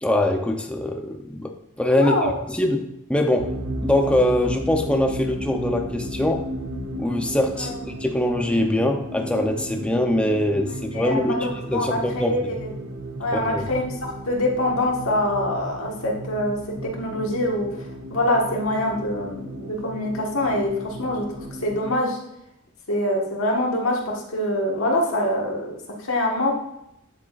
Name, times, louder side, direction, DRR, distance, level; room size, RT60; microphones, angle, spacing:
voice 1, 0.0-2.8 3.1-3.5 3.8-6.4 7.0-12.3 13.3-13.7, left 1 dB, 5° left, 3 dB, 0.6 m, -23 dB
voice 2, 2.0-2.4 7.6-7.8 10.9-12.7 13.2-16.6 16.8-17.7 18.1-21.2 21.6-22.2 22.9-26.5, left 1 dB, 75° left, -2 dB, 1.5 m, -24 dB
sound 1, 3.4-21.9, right 1 dB, 90° right, 0.8 m, -34 dB
8.9 x 7.9 x 2.4 m, 0.81 s
head